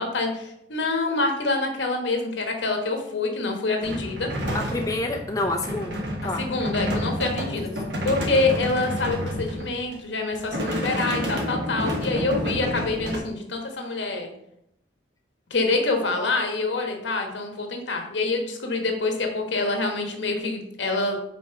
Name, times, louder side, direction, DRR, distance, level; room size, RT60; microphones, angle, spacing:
voice 1, 0.0-4.3 6.4-7.7 8.0-14.3 15.5-21.2, left 3 dB, 75° left, 3 dB, 1.4 m, -26 dB
sound 1, 3.8-9.9 10.3-13.2, equal, 70° right, 1.3 m, -29 dB
voice 2, 4.5-6.5 7.5-7.7, left 2 dB, 15° left, 1 dB, 0.6 m, -28 dB
5.2 x 4.4 x 5.8 m, 0.77 s
head